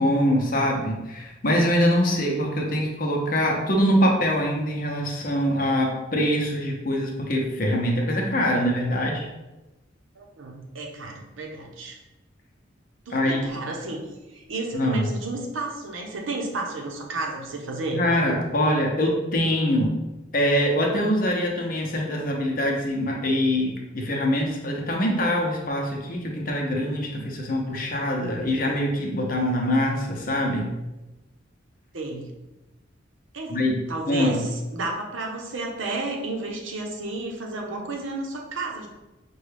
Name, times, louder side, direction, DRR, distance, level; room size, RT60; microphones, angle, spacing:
voice 1, 0.0-9.3 13.1-13.4 14.7-15.1 17.9-19.9 20.3-30.7 33.5-33.8 34.1-34.4, equal, 45° left, 0 dB, 0.7 m, -24 dB
voice 2, 10.2-12.0 13.1-14.0 14.3-18.0 31.9-32.3 33.3-33.6 33.9-38.9, right 2 dB, 80° right, 1 dB, 0.8 m, -32 dB
5.3 x 2.3 x 3.3 m, 1.0 s
head